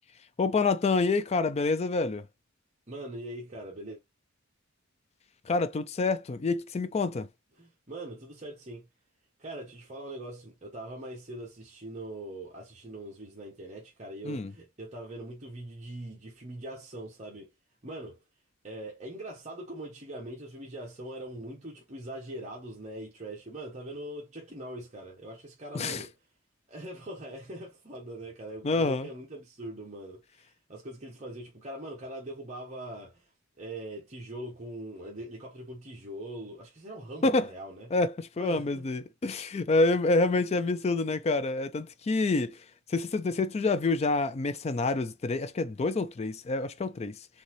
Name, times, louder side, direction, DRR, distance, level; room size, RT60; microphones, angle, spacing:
voice 1, 0.4-2.3 5.5-7.3 14.2-14.5 25.7-26.1 28.6-29.1 37.2-37.5 37.9-47.3, left 3 dB, 30° left, 0.4 m, -27 dB
voice 2, 2.9-4.0 7.6-8.9 9.4-17.5 17.8-18.2 18.6-26.1 26.7-33.2 33.6-37.9 38.4-38.7, right 1 dB, 35° right, 1.2 m, -42 dB
4.0 x 3.7 x 3.1 m
head